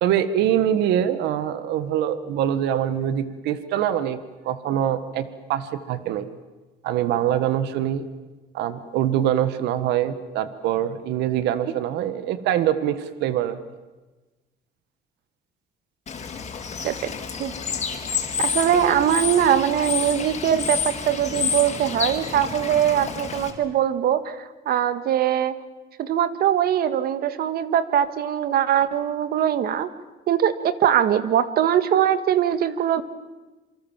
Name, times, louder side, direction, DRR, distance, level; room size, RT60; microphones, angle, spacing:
voice 1, 0.0-4.2 4.4-6.3 6.8-8.1 8.5-13.6, right 10 dB, 85° right, 12 dB, 1.6 m, -24 dB
Bird / Water, 16.1-23.5, left 6 dB, 40° left, 4.5 m, -29 dB
voice 2, 18.4-25.6 26.0-29.9 30.3-33.0, right 10 dB, 65° right, 12 dB, 1.8 m, -22 dB
27.5 x 24.5 x 7.4 m, 1.2 s
cardioid pair, 110°, 17 cm